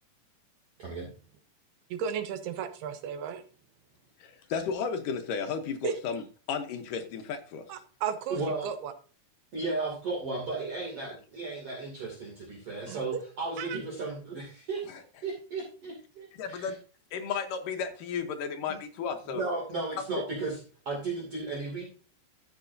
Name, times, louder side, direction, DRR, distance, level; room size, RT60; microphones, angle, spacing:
voice 1, 1.9-3.4 5.8-5.9 7.7-8.9 12.9-13.0 13.6-13.8, right 7 dB, 80° right, 9 dB, 3.0 m, -34 dB
voice 2, 4.2-6.2 6.5-7.6 14.9-15.0 16.3-16.8 17.1-19.4 20.2-20.3, left 6 dB, 70° left, 6 dB, 2.3 m, -33 dB
voice 3, 8.3-8.7 9.5-14.8 15.2-16.7 18.7-18.8 19.3-20.5 20.8-21.8, right 3 dB, 40° right, -3 dB, 3.1 m, -35 dB
13.0 x 8.1 x 2.7 m, 0.38 s
omnidirectional pair, 4.6 m